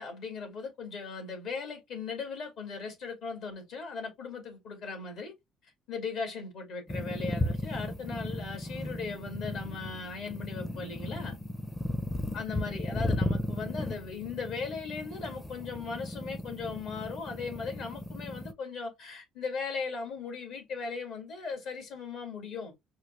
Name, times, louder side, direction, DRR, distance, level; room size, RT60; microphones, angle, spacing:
voice 1, 0.0-5.3 5.6-11.4 12.3-22.7, left 5 dB, 70° left, 2.2 m, -38 dB
sound 1, 6.9-18.5, left 1 dB, 15° left, 0.6 m, -35 dB
4.8 x 2.3 x 3.1 m
cardioid pair, 90°, 0 cm